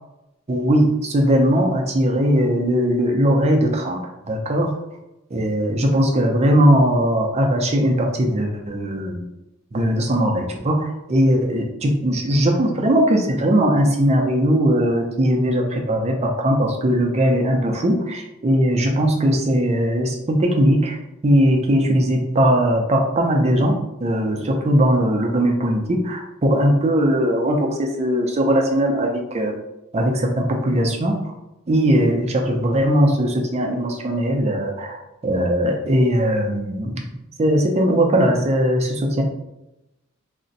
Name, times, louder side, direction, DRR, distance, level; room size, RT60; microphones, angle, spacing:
voice 1, 0.5-4.0 4.3-4.7 5.3-9.3 9.7-21.0 21.2-29.6 29.9-31.2 31.7-35.0 35.2-36.9 37.4-39.2, equal, 30° right, 2 dB, 0.4 m, -19 dB
2.5 x 2.1 x 3.9 m, 0.92 s
head